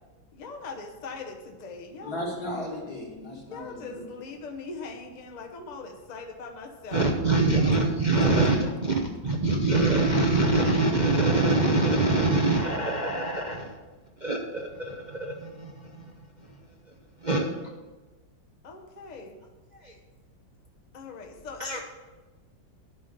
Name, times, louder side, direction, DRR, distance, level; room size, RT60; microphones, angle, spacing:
voice 1, 0.3-2.3 3.5-7.1 7.5-7.8 8.1-8.7 18.6-19.4 20.9-21.8, left 4 dB, 30° left, 1 dB, 0.9 m, -40 dB
voice 2, 2.0-4.1, left 1 dB, 55° left, -1 dB, 2.7 m, -36 dB
voice 3, 6.9-8.6 9.2-13.8 14.2-16.1 17.2-17.5 19.8-19.9 21.6-21.8, right 2 dB, 40° right, 0 dB, 0.6 m, -24 dB
10.5 x 5.7 x 6.7 m, 1.2 s
omnidirectional pair, 2.1 m